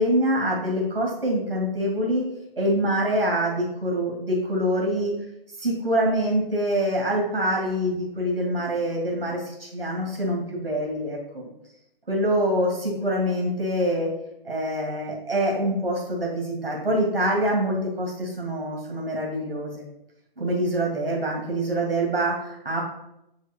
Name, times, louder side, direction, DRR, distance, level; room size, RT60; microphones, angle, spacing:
voice 1, 0.0-2.3 2.6-5.1 5.6-11.5 12.1-14.1 14.4-19.8 20.4-22.8, equal, 70° right, -1 dB, 2.4 m, -25 dB
8.1 x 3.8 x 5.4 m, 0.84 s
figure-of-eight pair, 140°, 29 cm